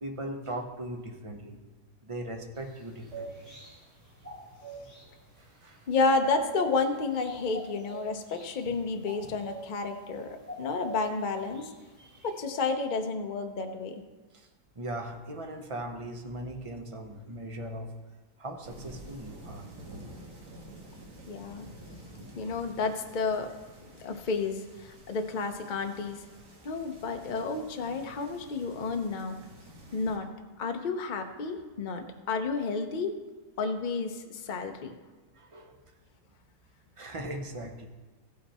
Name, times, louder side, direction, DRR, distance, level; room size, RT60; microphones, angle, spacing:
voice 1, 0.0-1.6 2.0-3.5 5.4-5.9 12.0-12.3 14.3-14.5 14.7-17.9 18.4-19.7 25.3-25.4 35.3-35.8 37.0-37.9, right 1 dB, 30° right, 3 dB, 0.7 m, -39 dB
sound 1, 2.5-12.4, right 3 dB, 45° right, 3.4 m, -46 dB
voice 2, 5.9-10.3 10.6-11.6 12.2-14.0 21.3-21.7 22.3-23.5 24.0-26.2 26.6-29.4 29.9-30.3 30.6-33.1 33.6-34.9, left 4 dB, 40° left, 5 dB, 0.7 m, -31 dB
sound 2, 18.6-30.2, right 1 dB, 80° right, 2.2 m, -50 dB
15.5 x 6.1 x 4.2 m, 1.2 s
omnidirectional pair, 1.8 m